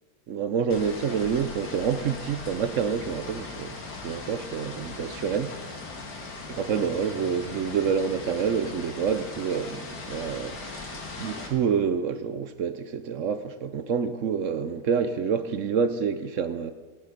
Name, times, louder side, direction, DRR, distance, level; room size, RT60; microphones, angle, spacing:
voice 1, 0.3-3.8 4.0-5.9 6.5-16.7, right 6 dB, 60° right, 0.9 m, -28 dB
sound 1, 0.7-11.5, left 3 dB, 90° left, 2.4 m, -39 dB
17.0 x 11.0 x 5.1 m
omnidirectional pair, 1.7 m